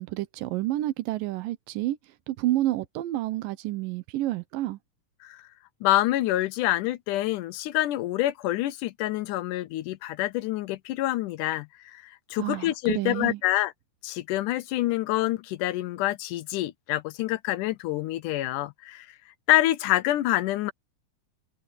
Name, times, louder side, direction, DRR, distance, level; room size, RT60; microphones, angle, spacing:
voice 1, 0.0-2.0 2.3-4.8 12.4-13.4, right 15 dB, 85° right, 2.5 m, -29 dB
voice 2, 5.8-13.7 14.0-19.1 19.5-20.7, left 15 dB, 80° left, 2.1 m, -27 dB
omnidirectional pair, 3.9 m